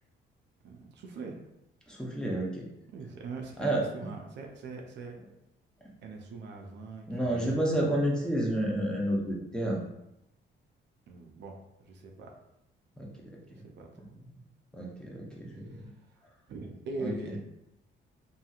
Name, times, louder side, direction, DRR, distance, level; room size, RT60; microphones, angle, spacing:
voice 1, 0.6-1.4 2.9-5.2 6.0-7.7 11.1-12.4 13.5-13.9 15.7-16.2 16.5-17.4, right 4 dB, 60° right, 1 dB, 0.5 m, -42 dB
voice 2, 1.9-2.6 3.6-3.8 7.1-9.8 13.0-13.1 13.5-13.6 14.7-15.9 17.0-17.4, right 1 dB, 5° left, -3 dB, 0.7 m, -30 dB
2.8 x 2.7 x 2.4 m, 0.86 s
cardioid pair, 90°, 20 cm